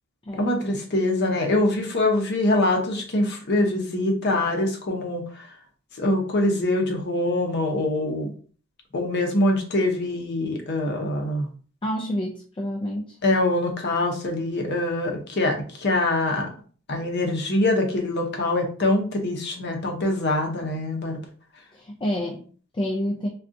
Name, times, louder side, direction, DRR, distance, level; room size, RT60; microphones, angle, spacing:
voice 1, 0.4-5.5 6.0-8.3 8.9-11.5 13.2-16.5 16.9-21.2, left 1 dB, 55° left, 2 dB, 0.7 m, -24 dB
voice 2, 11.8-13.2 21.7-23.3, equal, 25° left, 0 dB, 0.4 m, -29 dB
3.6 x 2.3 x 2.5 m, 0.42 s
head